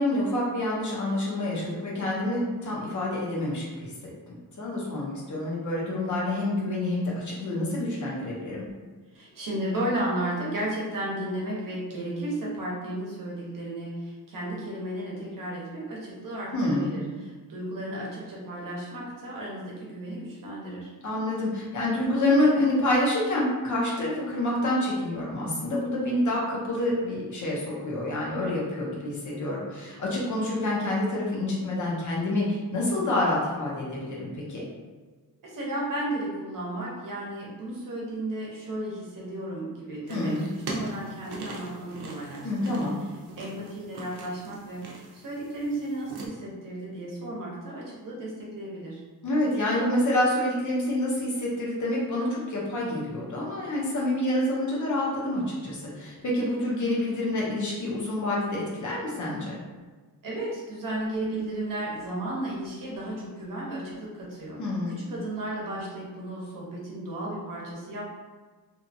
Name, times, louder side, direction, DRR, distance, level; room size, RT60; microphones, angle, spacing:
voice 1, 0.0-8.7 16.5-16.9 21.0-34.6 40.1-40.5 42.4-43.0 49.2-59.6 64.6-65.0, left 1 dB, 50° left, -4 dB, 0.7 m, -27 dB
voice 2, 9.1-20.9 35.4-40.4 40.7-42.8 43.4-49.0 60.2-64.6 64.9-68.1, right 1 dB, 60° right, -4 dB, 0.8 m, -34 dB
sound 1, 40.1-46.3, right 2 dB, 90° right, 0.6 m, -41 dB
2.7 x 2.3 x 2.6 m, 1.4 s
wide cardioid pair, 160°, 37 cm